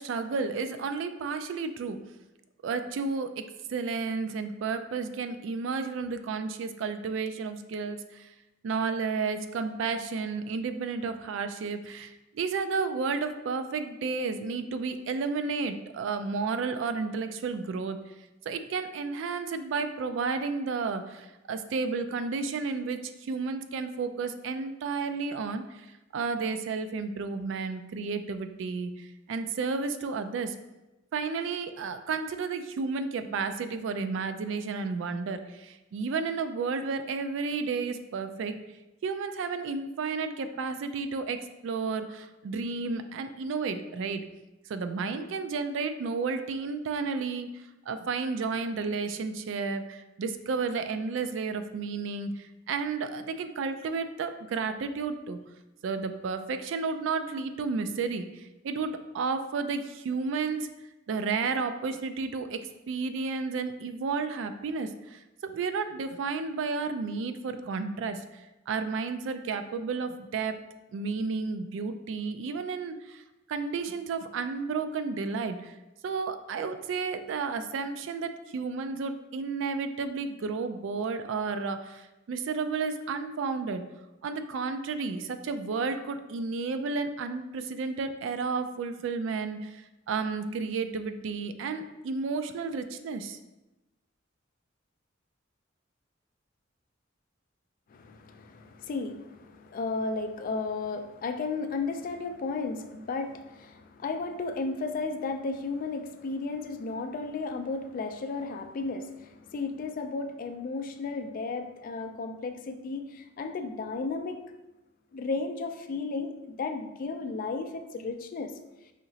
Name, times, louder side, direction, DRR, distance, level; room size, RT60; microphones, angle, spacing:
voice 1, 0.0-2.0 2.6-3.4 3.7-8.3 8.6-18.0 18.5-25.9 26.1-30.6 31.1-38.6 39.0-44.2 44.7-47.5 47.9-55.4 55.8-60.7 61.1-62.6 62.9-70.6 70.9-73.2 73.5-75.7 76.0-83.8 84.2-93.4, right 4 dB, 70° right, 9 dB, 0.3 m, -32 dB
voice 2, 97.9-114.4 115.1-118.5, left 3 dB, 45° left, 7 dB, 0.3 m, -34 dB
4.9 x 2.9 x 2.7 m, 1.0 s
head